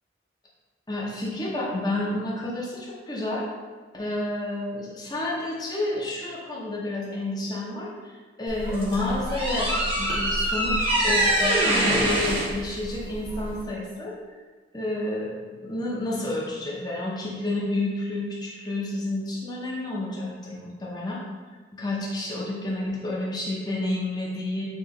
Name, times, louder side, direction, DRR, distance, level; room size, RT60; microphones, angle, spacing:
voice 1, 0.9-3.5 3.9-14.1 14.7-15.3 15.6-21.2 21.7-24.7, left 2 dB, 20° left, -5 dB, 0.7 m, -30 dB
sound 1, 8.5-13.7, right 1 dB, 30° right, 0.8 m, -24 dB
4.6 x 2.5 x 4.0 m, 1.4 s
head